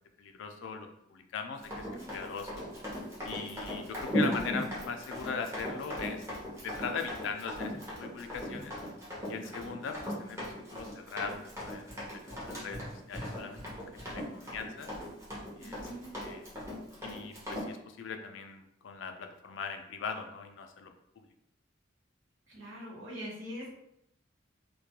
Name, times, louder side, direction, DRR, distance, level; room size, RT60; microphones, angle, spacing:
voice 1, 0.2-2.7 3.3-6.2 6.6-8.8 9.3-14.9 15.6-15.8 16.1-16.4 17.0-20.9, left 5 dB, 70° left, 6 dB, 0.3 m, -40 dB
Run, 1.6-17.7, equal, 15° right, 0.7 m, -38 dB
voice 2, 1.8-2.2 9.4-9.8 15.6-16.1 22.5-23.7, equal, 70° right, -6 dB, 0.9 m, -44 dB
2.3 x 2.2 x 2.8 m, 0.77 s
head